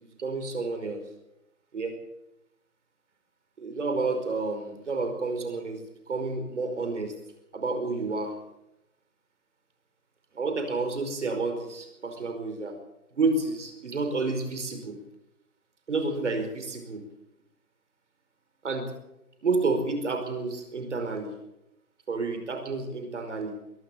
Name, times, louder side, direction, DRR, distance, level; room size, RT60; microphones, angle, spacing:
voice 1, 0.2-1.0 1.7-1.9 3.6-7.1 7.5-8.4 10.3-12.8 13.1-15.0 15.9-17.0 18.6-18.9 19.4-21.3 22.1-23.5, right 3 dB, 50° right, 7 dB, 5.0 m, -30 dB
22.0 x 16.5 x 7.1 m, 0.87 s
hypercardioid pair, 165°, 45 cm